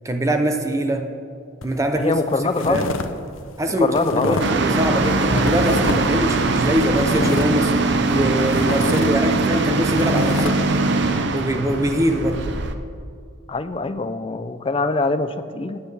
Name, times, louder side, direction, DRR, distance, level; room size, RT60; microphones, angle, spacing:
voice 1, 0.0-1.1 1.6-2.1 2.6-2.9 3.6-3.9 4.2-7.7 8.1-10.6 11.3-12.4, equal, 15° right, 5 dB, 0.7 m, -22 dB
sound 1, 1.6-1.8 2.2-3.1 3.3-4.6 5.0-6.2 6.5-8.2 8.5-10.5, left 3 dB, 70° left, 0.7 m, -28 dB
voice 2, 1.9-2.9 3.8-4.4 13.5-15.8, left 3 dB, 25° left, 11 dB, 0.4 m, -23 dB
sound 2, 4.4-12.7, right 3 dB, 55° right, 0.6 m, -21 dB
16.0 x 9.7 x 3.4 m, 2.2 s
head